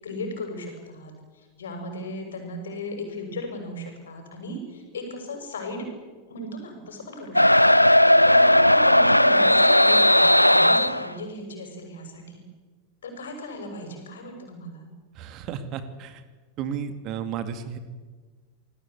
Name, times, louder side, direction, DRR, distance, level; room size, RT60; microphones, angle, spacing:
voice 1, 0.0-5.9 6.3-7.7 8.1-12.4 13.0-14.9, left 1 dB, 65° left, 4 dB, 6.8 m, -37 dB
sound 1, 7.4-11.1, left 1 dB, 90° left, 0.7 m, -16 dB
voice 2, 15.1-16.2 16.6-17.8, right 8 dB, 40° right, 10 dB, 2.4 m, -33 dB
27.0 x 19.5 x 8.4 m, 1.4 s
figure-of-eight pair, 90°, 0 cm